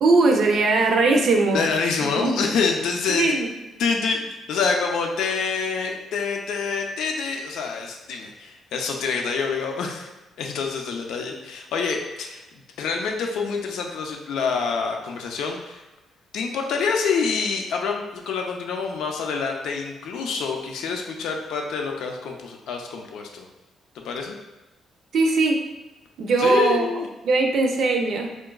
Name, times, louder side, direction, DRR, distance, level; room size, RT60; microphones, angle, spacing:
voice 1, 0.0-1.6 2.2-2.3 3.2-3.5 25.1-25.6 26.2-26.9 27.2-28.3, right 3 dB, 65° right, 3 dB, 0.5 m, -19 dB
voice 2, 1.5-3.4 3.8-10.1 10.4-12.4 12.8-15.8 16.3-23.5 23.9-24.4 26.4-27.1, left 5 dB, 80° left, 2 dB, 0.4 m, -26 dB
4.6 x 2.2 x 2.3 m, 1.1 s
cardioid pair, 90°, 0 cm